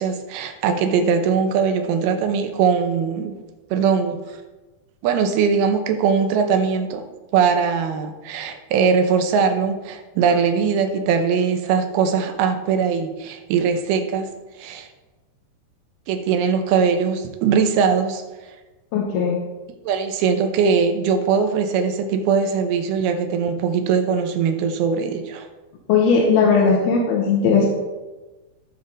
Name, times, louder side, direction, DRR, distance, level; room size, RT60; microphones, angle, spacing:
voice 1, 0.0-3.4 3.7-4.2 5.0-7.0 7.3-14.3 14.6-14.9 16.1-18.2 19.9-25.5, right 6 dB, 75° right, 6 dB, 2.7 m, -21 dB
voice 2, 18.9-19.4 25.9-27.6, left 5 dB, 70° left, -4 dB, 3.0 m, -17 dB
14.5 x 6.9 x 4.0 m, 1.2 s
omnidirectional pair, 4.8 m